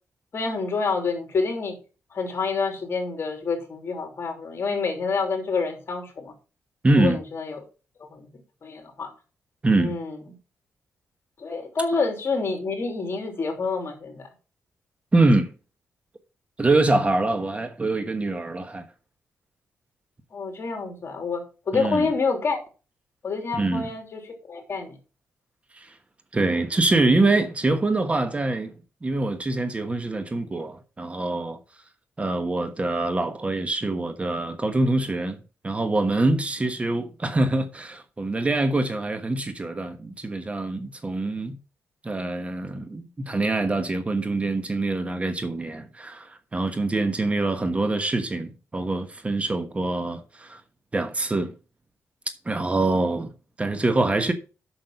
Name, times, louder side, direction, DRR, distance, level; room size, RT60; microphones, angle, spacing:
voice 1, 0.3-1.8 2.1-6.3 7.0-7.6 8.1-8.3 8.6-9.1 9.8-10.2 11.4-14.3 20.3-22.6 23.2-24.2 24.5-25.0, left 4 dB, 50° left, 3.2 m, -27 dB
voice 2, 6.8-7.2 9.6-9.9 15.1-15.5 16.6-18.8 21.7-22.1 23.5-23.9 25.7-25.9 26.3-28.7 29.0-31.6 32.2-35.4 35.6-41.6 42.0-50.6 50.9-51.5 52.4-53.3 53.6-54.3, right 2 dB, 25° right, 1.2 m, -24 dB
7.8 x 6.4 x 5.7 m
cardioid pair, 90°, 5 cm